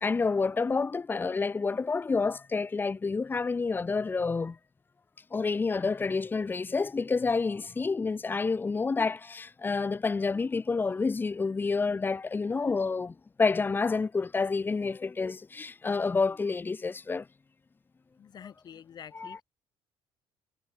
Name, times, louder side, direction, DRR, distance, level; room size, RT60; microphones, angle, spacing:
voice 1, 0.0-4.6 5.3-17.3 19.1-19.4, left 4 dB, 20° left, 1.4 m, -29 dB
voice 2, 18.2-19.4, left 8 dB, 45° left, 6.6 m, -47 dB
cardioid pair, 120°, 10 cm